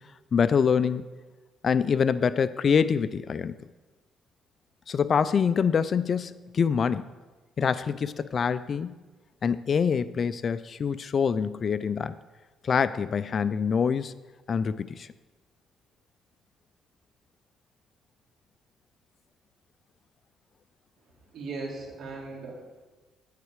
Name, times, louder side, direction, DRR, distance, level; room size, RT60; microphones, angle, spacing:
voice 1, 0.3-1.0 1.6-3.5 4.9-7.1 7.6-8.9 9.4-12.2 12.6-14.1 14.5-15.1, left 6 dB, 40° left, 15 dB, 0.3 m, -25 dB
voice 2, 21.3-22.8, right 3 dB, 60° right, -2 dB, 2.9 m, -38 dB
9.6 x 8.2 x 4.8 m, 1.2 s
cardioid pair, 130°, 0 cm